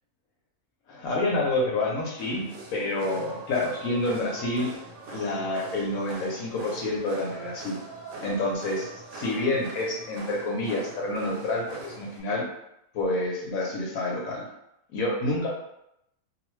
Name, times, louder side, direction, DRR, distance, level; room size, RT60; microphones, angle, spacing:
voice 1, 0.9-2.5 2.7-4.7 5.1-7.8 8.2-12.4 12.9-14.5 14.9-15.5, left 2 dB, 75° left, -2 dB, 1.0 m, -28 dB
sound 1, 2.2-12.2, right 3 dB, 75° right, 1.0 m, -42 dB
2.4 x 2.3 x 3.0 m, 0.81 s
omnidirectional pair, 1.6 m